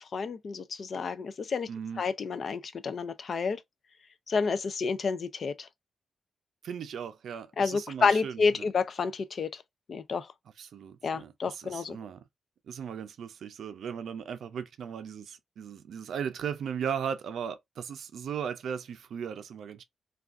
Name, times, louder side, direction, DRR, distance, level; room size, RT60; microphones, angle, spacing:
voice 1, 0.1-1.7 2.0-3.6 4.3-5.7 7.6-9.6 9.9-10.3 11.0-12.0, left 5 dB, 45° left, 0.3 m, -29 dB
voice 2, 1.7-2.0 6.6-8.7 10.6-12.2 12.7-19.8, right 7 dB, 75° right, 0.4 m, -37 dB
2.5 x 2.3 x 3.4 m
wide cardioid pair, 175°, 0 cm